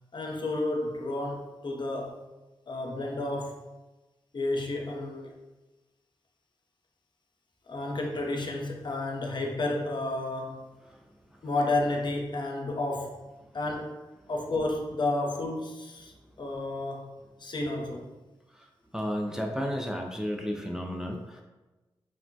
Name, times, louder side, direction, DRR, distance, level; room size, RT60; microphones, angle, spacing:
voice 1, 0.1-2.2 2.7-3.6 4.3-5.3 7.7-10.6 11.4-13.2 13.5-14.0 14.3-18.1, left 2 dB, 50° left, 1 dB, 0.6 m, -31 dB
voice 2, 18.9-21.4, equal, 5° right, 1 dB, 0.4 m, -32 dB
3.1 x 2.1 x 2.6 m, 1.1 s
cardioid pair, 45°, 10 cm